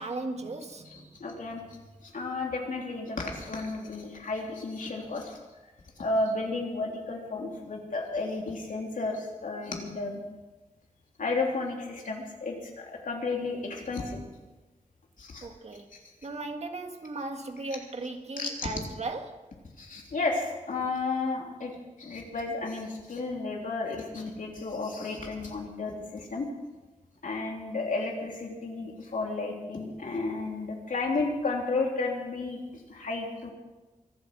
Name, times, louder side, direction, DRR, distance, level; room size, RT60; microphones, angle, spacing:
voice 1, 0.0-1.2 15.4-15.9 16.2-19.4, right 2 dB, 55° right, 1.7 m, -37 dB
voice 2, 0.9-1.6 2.0-5.4 6.0-10.2 11.2-14.2 15.2-15.5 18.4-18.7 19.8-21.7 22.0-26.5 27.2-32.6 32.9-33.5, left 3 dB, 85° left, 3.3 m, -32 dB
24.5 x 8.6 x 6.1 m
wide cardioid pair, 105°, 13 cm